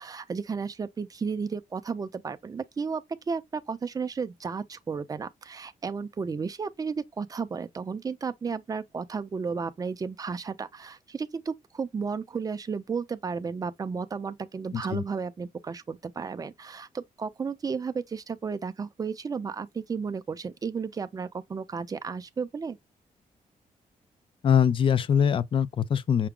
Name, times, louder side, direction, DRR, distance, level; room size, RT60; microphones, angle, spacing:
voice 1, 0.0-22.8, right 5 dB, 25° right, 0.5 m, -33 dB
voice 2, 14.7-15.0 24.4-26.3, left 8 dB, 40° left, 0.4 m, -23 dB
5.8 x 2.1 x 3.6 m
wide cardioid pair, 145°, 14 cm